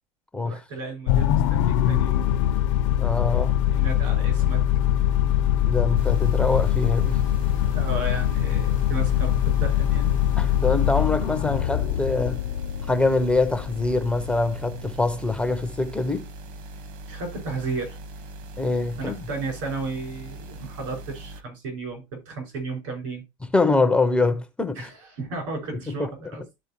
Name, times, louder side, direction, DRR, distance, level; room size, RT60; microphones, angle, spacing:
voice 1, 0.4-2.3 3.5-4.6 6.5-6.7 7.7-10.1 17.1-18.0 19.0-23.2 24.8-26.4, right 3 dB, 75° right, 5.3 m, -34 dB
sound 1, 1.1-15.6, left 11 dB, 75° left, 0.6 m, -23 dB
voice 2, 3.0-3.6 5.7-7.2 10.4-12.4 12.9-16.3 18.6-19.2 23.5-24.9 25.9-26.1, left 3 dB, 5° left, 0.4 m, -24 dB
sound 2, 5.9-21.4, right 2 dB, 55° right, 1.2 m, -41 dB
13.0 x 4.4 x 2.9 m
supercardioid pair, 160°, 16 cm